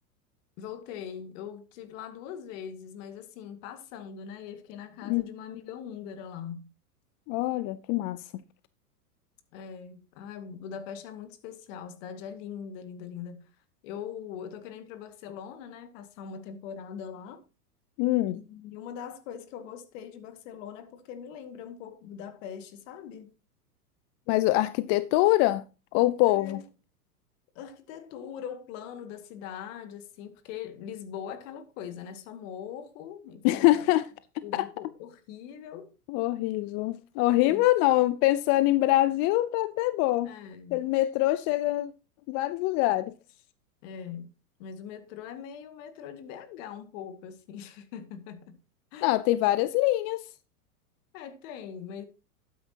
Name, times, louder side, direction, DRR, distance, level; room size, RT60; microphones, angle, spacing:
voice 1, 0.6-6.7 9.5-13.5 13.8-17.4 18.3-23.3 26.2-26.6 27.6-33.8 34.4-35.9 37.5-37.7 40.2-40.8 43.8-44.3 44.6-48.6 48.9-49.1 51.1-52.0, left 8 dB, 55° left, 2.0 m, -41 dB
voice 2, 7.3-8.2 18.0-18.4 24.3-25.6 25.9-26.6 33.4-34.1 34.5-34.7 36.1-40.3 40.7-41.9 42.3-43.1 49.0-50.2, left 17 dB, 35° left, 0.5 m, -24 dB
12.0 x 9.3 x 2.9 m
hypercardioid pair, 110°, 47 cm